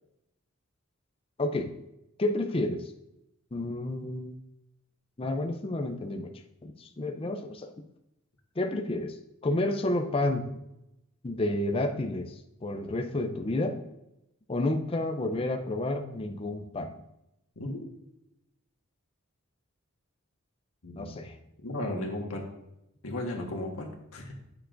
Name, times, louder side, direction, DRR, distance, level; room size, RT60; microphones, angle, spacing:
voice 1, 1.4-1.7 2.2-2.9 3.5-4.4 5.2-6.3 6.6-7.7 8.6-10.5 11.2-12.3 12.6-13.8 14.5-16.9 21.0-21.3, left 2 dB, 25° left, 3 dB, 0.5 m, -30 dB
voice 2, 17.6-17.9 20.8-21.3 21.6-22.5 23.0-24.3, left 1 dB, 85° left, 1 dB, 1.5 m, -35 dB
9.3 x 6.8 x 2.6 m, 0.88 s
head